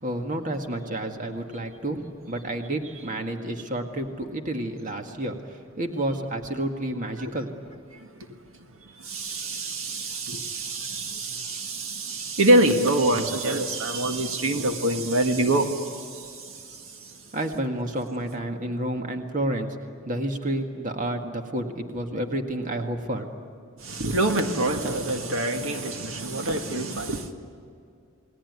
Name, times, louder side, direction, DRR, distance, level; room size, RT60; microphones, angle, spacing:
voice 1, 0.0-7.5 17.3-19.8 20.1-23.3, right 1 dB, 40° right, 1.9 m, -30 dB
voice 2, 7.9-17.3 23.8-27.3, right 1 dB, 70° right, 1.8 m, -26 dB
29.0 x 20.5 x 9.6 m
head